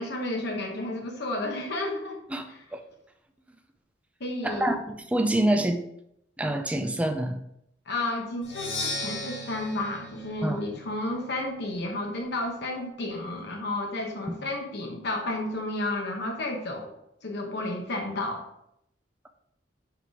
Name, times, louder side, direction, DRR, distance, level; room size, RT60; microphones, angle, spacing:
voice 1, 0.0-2.2 2.5-2.6 4.2-4.7 7.9-16.9 17.2-18.4, left 2 dB, 65° left, 1 dB, 1.0 m, -32 dB
voice 2, 4.4-4.8 5.1-5.8 6.4-7.4 10.4-10.6, right 1 dB, 5° right, 5 dB, 0.4 m, -26 dB
Percussion, 8.4-12.2, left 2 dB, 90° left, 1.6 m, -37 dB
4.9 x 4.9 x 4.7 m, 0.78 s
head